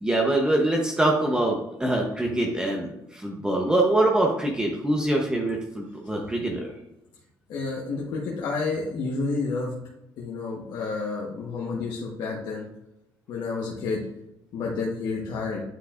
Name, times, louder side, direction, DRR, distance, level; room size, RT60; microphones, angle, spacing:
voice 1, 0.0-6.7, right 1 dB, 10° right, -1 dB, 0.9 m, -24 dB
voice 2, 7.5-9.7 10.2-12.7 13.3-14.0 14.5-15.6, left 4 dB, 70° left, -3 dB, 1.3 m, -30 dB
9.5 x 4.5 x 2.5 m, 0.86 s
cardioid pair, 130°, 8 cm